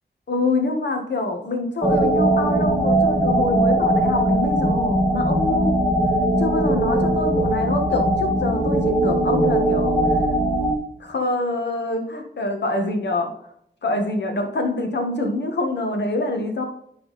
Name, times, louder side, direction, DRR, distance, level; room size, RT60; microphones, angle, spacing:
voice 1, 0.3-5.7 6.4-10.2 11.0-13.3 13.8-16.6, left 2 dB, 80° left, 4 dB, 1.6 m, -25 dB
sound 1, 1.8-10.7, right 1 dB, 5° left, 1.4 m, -20 dB
10.5 x 4.2 x 4.2 m, 0.70 s
wide cardioid pair, 115°, 18 cm